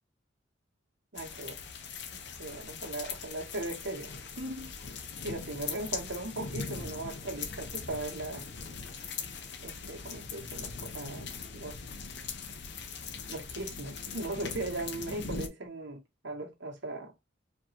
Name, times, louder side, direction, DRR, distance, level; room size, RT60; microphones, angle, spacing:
voice 1, 1.1-1.6 2.4-4.7 5.2-8.5 9.6-11.8 13.3-17.1, right 2 dB, 65° right, 1.3 m, -38 dB
sound 1, 1.2-15.5, left 5 dB, 60° left, 0.7 m, -41 dB
4.4 x 3.0 x 2.8 m
head